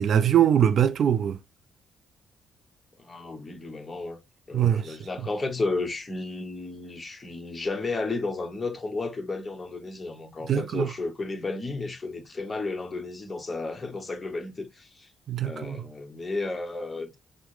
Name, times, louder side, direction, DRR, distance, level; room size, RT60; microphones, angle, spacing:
voice 1, 0.0-1.4 4.5-5.0 10.5-10.9 15.3-15.8, right 9 dB, 60° right, 0.4 m, -22 dB
voice 2, 3.0-4.2 4.5-15.1 15.4-17.2, left 3 dB, 25° left, 1.0 m, -33 dB
5.9 x 2.1 x 3.8 m
cardioid pair, 90°, 0 cm